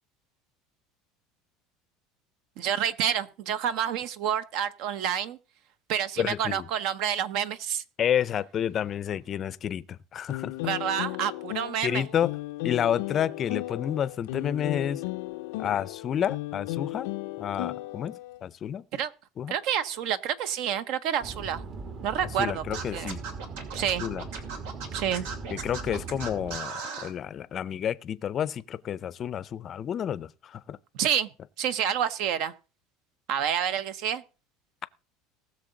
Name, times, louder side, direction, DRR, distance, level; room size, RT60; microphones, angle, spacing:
voice 1, 2.6-5.4 5.9-7.8 10.6-12.0 18.9-19.1 19.5-21.6 22.0-22.6 22.9-23.2 23.7-24.0 24.9-25.2 31.0-31.3 31.6-32.5 33.3-34.2, right 9 dB, 60° right, 0.8 m, -28 dB
voice 2, 6.2-6.7 8.0-10.6 11.8-12.3 12.6-15.0 15.6-17.1 17.4-18.8 19.4-19.5 22.4-23.2 24.0-24.3 25.5-30.8, left 9 dB, 30° left, 0.5 m, -30 dB
sound 1, 10.3-18.4, left 19 dB, 80° left, 0.5 m, -35 dB
sound 2, 21.2-26.6, right 4 dB, 35° right, 1.2 m, -39 dB
Scratching (performance technique), 22.7-27.1, right 5 dB, 80° right, 2.5 m, -37 dB
19.5 x 6.6 x 3.9 m
cardioid pair, 145°, 0 cm